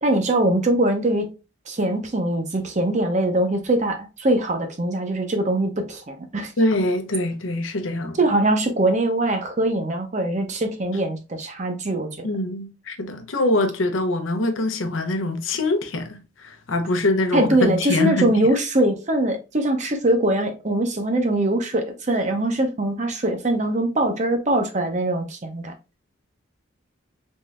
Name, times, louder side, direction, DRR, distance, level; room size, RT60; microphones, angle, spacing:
voice 1, 0.0-1.3 1.7-6.5 8.2-12.3 17.3-25.7, right 1 dB, 35° right, 0.7 m, -22 dB
voice 2, 6.6-8.2 12.2-18.4, left 1 dB, 80° left, 0.7 m, -24 dB
3.6 x 3.2 x 2.4 m
head